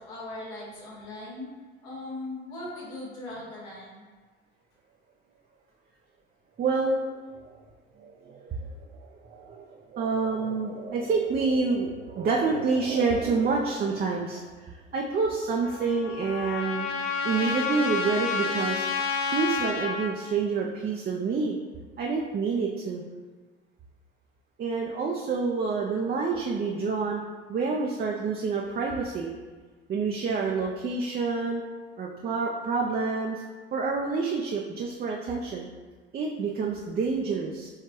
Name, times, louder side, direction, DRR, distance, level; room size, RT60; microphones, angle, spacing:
voice 1, 0.0-1.5 1.8-4.0, left 2 dB, 65° left, -5 dB, 1.3 m, -39 dB
voice 2, 6.6-7.2 8.0-8.7 9.0-16.9 17.2-18.8 19.3-21.6 22.0-23.0 24.6-27.2 27.5-29.3 29.9-31.6 32.0-33.4 33.7-35.7 36.1-37.7, right 4 dB, 30° right, -1 dB, 0.5 m, -28 dB
Trumpet, 15.6-20.1, left 5 dB, 45° left, 0.6 m, -30 dB
4.8 x 3.2 x 3.0 m, 1.4 s
hypercardioid pair, 60°, 33 cm